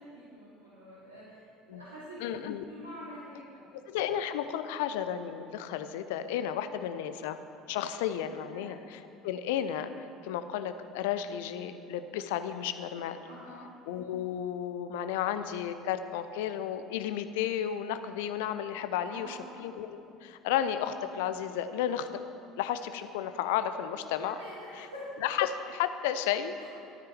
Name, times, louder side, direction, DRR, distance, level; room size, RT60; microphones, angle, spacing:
voice 1, 0.0-2.3 2.7-3.6 8.5-8.7 13.2-13.7 19.1-19.5 24.4-25.1 26.6-26.7, equal, 75° right, -10 dB, 2.3 m, -47 dB
voice 2, 2.2-2.6 3.9-13.2 13.5-22.2 22.6-24.4 24.8-24.9 25.2-26.5, left 10 dB, 65° left, 10 dB, 0.5 m, -33 dB
13.0 x 9.5 x 4.5 m, 2.6 s
figure-of-eight pair, 60°, 0 cm